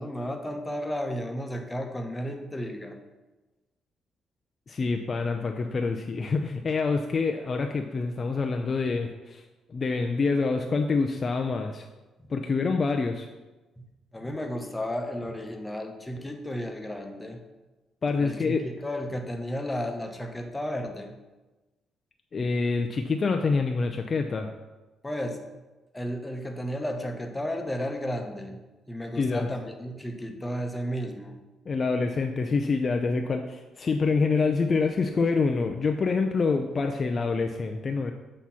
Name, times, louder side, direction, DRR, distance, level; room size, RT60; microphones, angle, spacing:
voice 1, 0.0-3.0 13.8-13.9 14.1-17.4 18.2-21.1 25.0-25.4 25.9-28.6 28.9-31.4, equal, 15° left, 4 dB, 0.9 m, -33 dB
voice 2, 4.7-9.4 9.7-11.9 12.3-13.3 18.0-18.6 22.3-24.5 29.2-29.5 31.7-38.1, left 4 dB, 40° left, 4 dB, 0.4 m, -26 dB
8.1 x 3.0 x 5.7 m, 1.1 s
cardioid pair, 90°, 0 cm